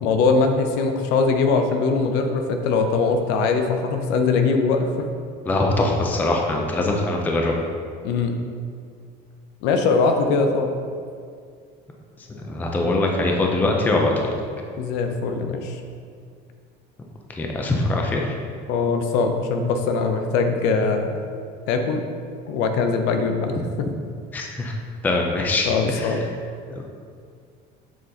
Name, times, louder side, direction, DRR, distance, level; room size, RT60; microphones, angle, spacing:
voice 1, 0.0-5.1 8.0-8.4 9.6-10.7 14.8-15.8 18.7-21.2 21.7-22.0 22.5-23.9 25.7-26.2, left 4 dB, 75° left, 5 dB, 0.7 m, -21 dB
voice 2, 5.5-7.5 12.5-14.1 17.3-18.3 24.3-24.7 25.0-26.1 26.7-26.8, left 2 dB, 10° left, 1 dB, 0.4 m, -22 dB
7.5 x 4.2 x 3.8 m, 2.2 s
cardioid pair, 180°, 18 cm